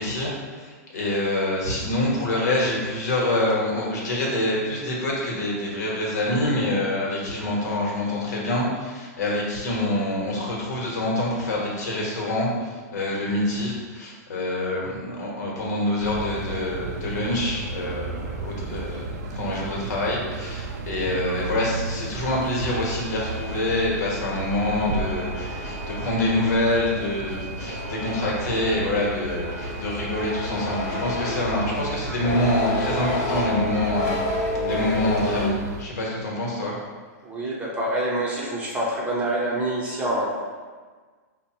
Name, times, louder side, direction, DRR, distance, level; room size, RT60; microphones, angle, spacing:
voice 1, 0.0-36.8, left 1 dB, 75° left, -3 dB, 1.2 m, -26 dB
sound 1, 16.0-35.8, right 2 dB, 70° right, 0.4 m, -34 dB
sound 2, 22.7-35.5, left 1 dB, 35° left, 0.7 m, -31 dB
voice 2, 37.2-40.5, right 1 dB, 15° right, -5 dB, 0.7 m, -26 dB
5.0 x 2.3 x 2.8 m, 1.5 s
hypercardioid pair, 145°, 9 cm